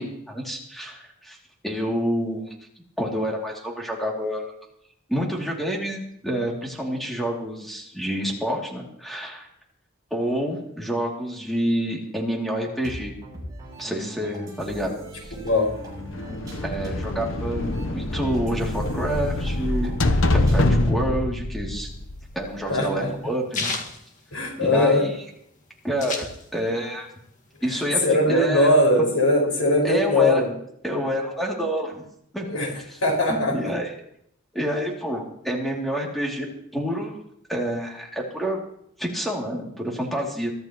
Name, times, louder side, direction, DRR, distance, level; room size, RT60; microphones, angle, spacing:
voice 1, 0.0-1.4 1.6-2.5 3.0-4.5 5.1-9.5 10.1-13.1 13.8-14.9 15.2-15.3 16.6-21.9 22.3-23.7 24.6-25.0 25.8-27.1 27.6-28.0 28.3-28.7 29.8-30.4 30.8-32.0 32.3-32.4 33.3-33.9 34.5-36.5 36.7-37.2 37.5-38.6 39.0-40.5, equal, ahead, -2 dB, 2.7 m, -28 dB
sound 1, 12.8-21.0, equal, 20° right, 7.5 m, -39 dB
sound 2, 15.9-22.6, left 2 dB, 60° left, 0.9 m, -25 dB
sound 3, 21.8-25.0 25.3-25.4 25.6-26.8 27.2-28.3, left 3 dB, 35° left, 1.9 m, -33 dB
voice 2, 22.7-23.1 24.3-25.1 27.7-30.5 32.4-32.7 33.0-33.6, left 1 dB, 90° left, 0 dB, 5.3 m, -20 dB
23.0 x 13.0 x 3.0 m, 0.71 s
head